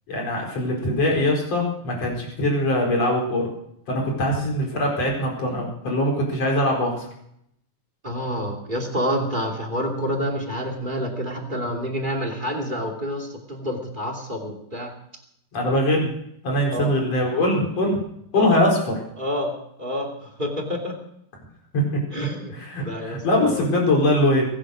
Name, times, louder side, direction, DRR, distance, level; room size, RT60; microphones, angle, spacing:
voice 1, 0.1-3.5 3.9-7.1 15.5-16.1 16.4-18.0 18.3-18.9 21.7-22.0 22.5-24.5, left 1 dB, 45° left, 0 dB, 5.6 m, -22 dB
voice 2, 8.0-14.9 16.7-16.9 18.3-18.6 19.2-19.5 19.8-21.0 22.1-22.5 22.8-23.7, equal, 15° right, 4 dB, 2.4 m, -28 dB
22.0 x 10.0 x 6.4 m, 0.74 s
omnidirectional pair, 4.0 m